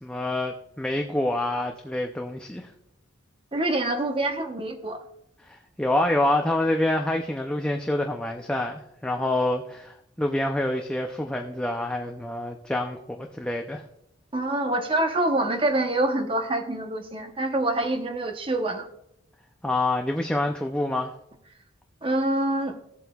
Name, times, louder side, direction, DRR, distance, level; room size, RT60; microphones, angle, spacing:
voice 1, 0.0-2.7 5.5-13.8 19.6-21.1, left 1 dB, 5° left, 2 dB, 0.4 m, -27 dB
voice 2, 3.5-5.0 14.3-18.9 22.0-22.8, right 1 dB, 25° right, 5 dB, 0.8 m, -26 dB
15.5 x 7.8 x 2.3 m, 0.79 s
head